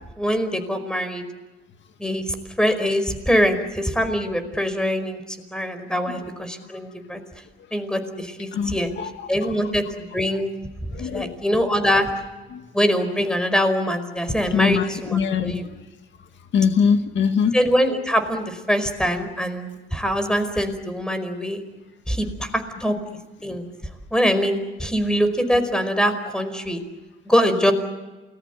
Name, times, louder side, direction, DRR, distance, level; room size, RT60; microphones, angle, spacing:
voice 1, 0.2-1.2 2.0-2.2 2.6-5.2 5.5-7.2 7.7-8.9 9.3-10.5 11.0-12.1 12.7-15.6 17.5-21.6 22.1-22.9 23.4-23.7 24.1-26.8 27.2-27.7, equal, 5° left, 9 dB, 4.9 m, -23 dB
voice 2, 8.5-9.3 10.9-11.4 12.5-12.6 14.5-15.6 16.5-17.6, left 6 dB, 65° left, 7 dB, 2.0 m, -22 dB
28.5 x 20.5 x 8.2 m, 1.2 s
cardioid pair, 90°, 20 cm